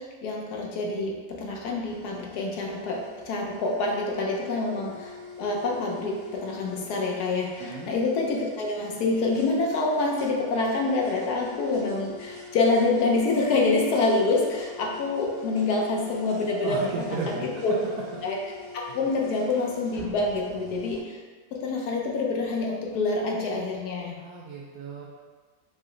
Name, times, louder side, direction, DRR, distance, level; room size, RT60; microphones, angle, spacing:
voice 1, 0.0-17.8 18.2-18.4 18.7-21.2 21.6-24.1, left 3 dB, 85° left, -1 dB, 1.2 m, -26 dB
sound 1, 1.8-21.0, left 3 dB, 65° left, 2.1 m, -44 dB
voice 2, 7.6-7.9 16.6-17.5 18.9-19.0 24.2-25.1, right 3 dB, 80° right, -5 dB, 1.1 m, -34 dB
4.8 x 2.1 x 3.7 m, 1.5 s
omnidirectional pair, 1.6 m